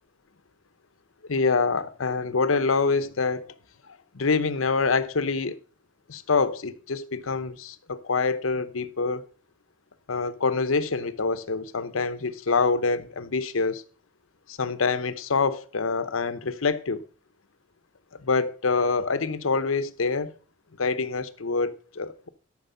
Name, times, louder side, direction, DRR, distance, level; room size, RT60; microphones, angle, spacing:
voice 1, 1.3-3.5 4.1-5.6 6.1-9.2 10.1-13.8 14.5-17.0 18.2-20.3 20.8-22.3, left 4 dB, 85° left, 0.9 m, -26 dB
13.0 x 6.2 x 5.6 m
head